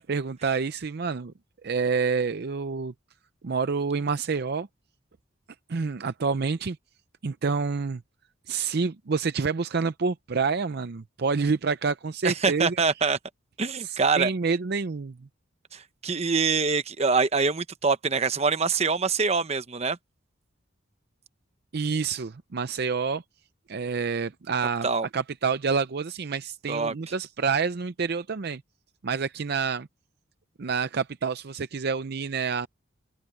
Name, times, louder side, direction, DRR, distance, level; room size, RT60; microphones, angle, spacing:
voice 1, 0.0-1.3 1.6-2.9 3.4-4.7 5.7-6.8 7.2-8.0 8.5-12.8 13.8-15.2 21.7-23.2 23.7-24.9 25.1-28.6 29.0-29.9 30.6-32.7, right 5 dB, 55° right, 0.5 m, -28 dB
voice 2, 12.2-13.2 13.6-14.3 15.7-20.0 24.8-25.1 26.7-26.9, right 4 dB, 30° right, 0.9 m, -24 dB
open air
head